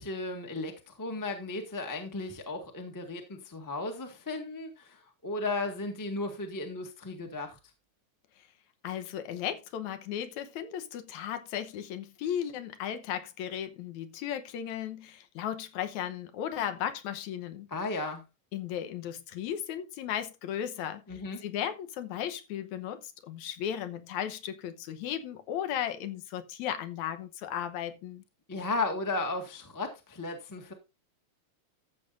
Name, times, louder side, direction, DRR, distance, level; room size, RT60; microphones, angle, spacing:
voice 1, 0.0-7.6 17.7-18.2 21.1-21.4 28.5-30.7, left 3 dB, 10° left, 1.1 m, -35 dB
voice 2, 8.8-17.7 18.5-28.2, left 10 dB, 80° left, 2.3 m, -36 dB
14.0 x 7.7 x 2.6 m
omnidirectional pair, 3.4 m